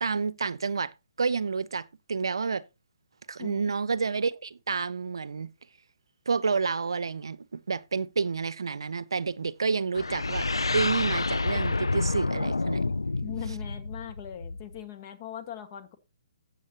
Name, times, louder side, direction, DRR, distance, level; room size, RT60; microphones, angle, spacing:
voice 1, 0.0-0.9 1.2-2.6 3.3-5.5 6.3-10.5 10.7-12.8, right 5 dB, 75° right, 0.6 m, -29 dB
voice 2, 3.4-3.7 13.2-16.0, left 12 dB, 40° left, 1.6 m, -40 dB
sound 1, 9.9-14.8, left 3 dB, 90° left, 0.4 m, -29 dB
13.5 x 8.0 x 2.9 m
figure-of-eight pair, 135°, 2 cm